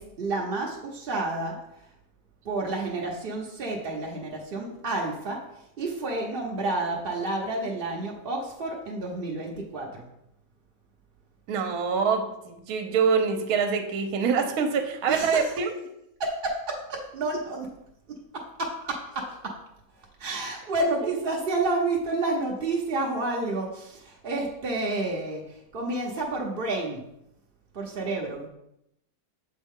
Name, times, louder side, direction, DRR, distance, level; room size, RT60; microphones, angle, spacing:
voice 1, 0.0-1.6 2.4-5.4 5.8-10.0 15.1-15.5 16.2-17.7 18.6-19.5 20.2-25.4 25.7-27.0 27.7-28.5, right 2 dB, 50° right, -2 dB, 0.7 m, -30 dB
voice 2, 11.5-15.7 21.0-21.1, right 5 dB, 65° right, 6 dB, 1.2 m, -25 dB
7.1 x 4.4 x 3.6 m, 0.82 s
omnidirectional pair, 1.8 m